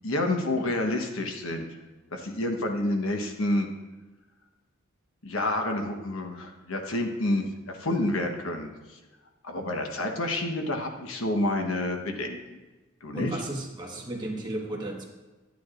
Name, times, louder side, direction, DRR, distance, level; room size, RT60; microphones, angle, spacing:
voice 1, 0.0-1.7 2.1-3.7 5.2-8.7 9.4-12.6 13.0-13.4, left 1 dB, 85° left, 3 dB, 1.2 m, -29 dB
voice 2, 13.1-15.0, right 1 dB, 20° right, -1 dB, 1.4 m, -34 dB
11.5 x 9.3 x 2.5 m, 1.2 s
head